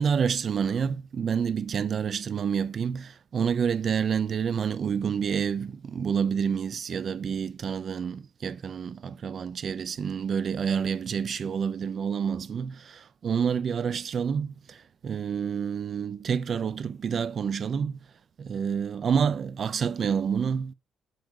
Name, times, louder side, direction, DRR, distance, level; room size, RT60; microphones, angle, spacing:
voice 1, 0.0-18.0 18.4-20.7, right 7 dB, 50° right, 0.8 m, -28 dB
7.8 x 4.9 x 6.8 m
cardioid pair, 90°, 0 cm